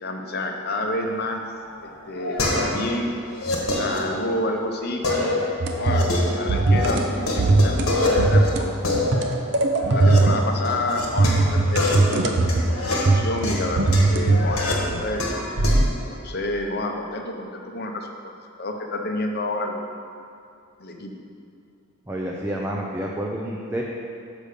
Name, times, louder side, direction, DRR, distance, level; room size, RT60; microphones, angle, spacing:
voice 1, 0.0-1.4 1.8-3.1 3.8-5.5 5.8-6.1 6.4-8.7 9.9-12.7 13.1-14.7 15.0-15.2 16.1-18.3 18.6-19.8 20.8-21.1, left 1 dB, 45° left, 3 dB, 0.7 m, -29 dB
sound 1, 1.6-2.9 3.2-4.6 5.0-6.9 7.2-10.2 10.6-15.9, left 2 dB, 85° left, 1.4 m, -26 dB
sound 2, 5.6-6.2 6.5-7.0 7.4-7.9 8.2-8.6 8.9-10.5 11.2-12.7 13.1-15.1 15.6-15.8, right 2 dB, 55° right, 0.6 m, -19 dB
voice 2, 22.1-23.8, right 1 dB, 10° right, -2 dB, 0.4 m, -29 dB
6.6 x 5.1 x 6.6 m, 2.5 s
head